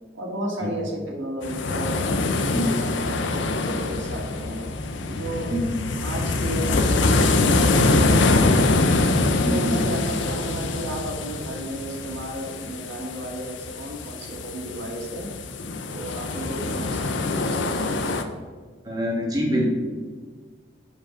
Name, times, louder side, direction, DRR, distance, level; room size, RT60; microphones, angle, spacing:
voice 1, 0.1-4.7 5.1-5.5 6.0-8.7 9.4-15.3 15.9-17.9, equal, 85° right, -1 dB, 1.7 m, -33 dB
sound 1, 1.4-18.2, left 2 dB, 80° left, 0.6 m, -24 dB
voice 2, 5.5-5.8 9.4-9.8 18.8-19.7, equal, 20° right, -1 dB, 1.5 m, -25 dB
7.8 x 4.6 x 5.8 m, 1.5 s
head